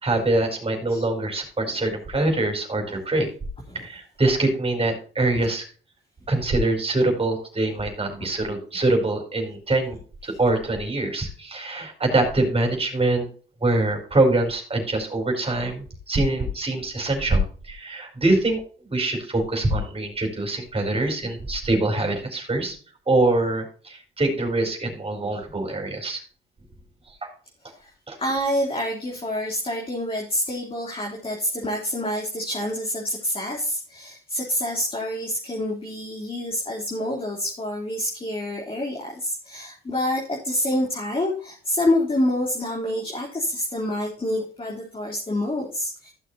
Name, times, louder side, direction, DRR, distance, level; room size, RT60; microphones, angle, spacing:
voice 1, 0.0-3.3 3.7-5.6 6.3-13.3 13.6-22.8 23.1-26.2 27.1-27.3 28.1-28.2, right 2 dB, 30° right, 3 dB, 4.8 m, -24 dB
voice 2, 28.2-46.1, left 1 dB, 30° left, -1 dB, 3.4 m, -27 dB
15.5 x 6.5 x 2.8 m, 0.39 s
cardioid pair, 90°, 20 cm